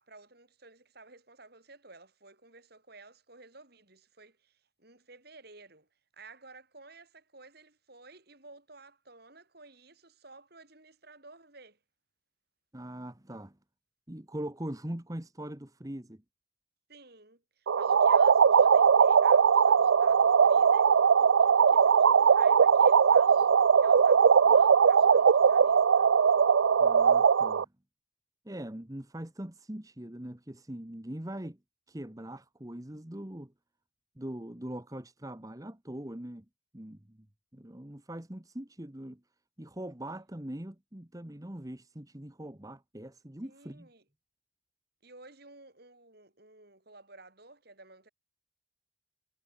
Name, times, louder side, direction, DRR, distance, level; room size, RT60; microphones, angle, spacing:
voice 1, 0.0-5.9 6.1-11.8 16.9-26.1 43.4-44.0 45.0-48.1, right 3 dB, 55° right, 7.6 m, -54 dB
voice 2, 12.7-13.6 14.1-16.2 26.8-27.7 28.4-31.6 31.9-33.5 34.2-36.4 36.7-37.3 37.5-39.2 39.6-43.9, right 1 dB, 20° right, 1.3 m, -41 dB
sound 1, 17.7-27.6, right 6 dB, 80° right, 0.5 m, -20 dB
head